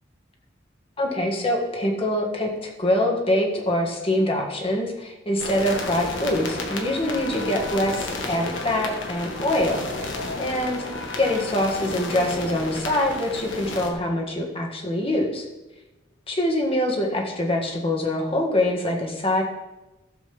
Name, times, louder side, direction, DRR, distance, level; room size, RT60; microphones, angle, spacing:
voice 1, 1.0-10.1 10.4-10.8 11.2-15.5 16.3-19.4, left 1 dB, 30° left, 0 dB, 1.8 m, -24 dB
sound 1, 5.4-13.9, left 2 dB, 75° left, 1.6 m, -32 dB
15.5 x 7.6 x 3.5 m, 1.0 s
head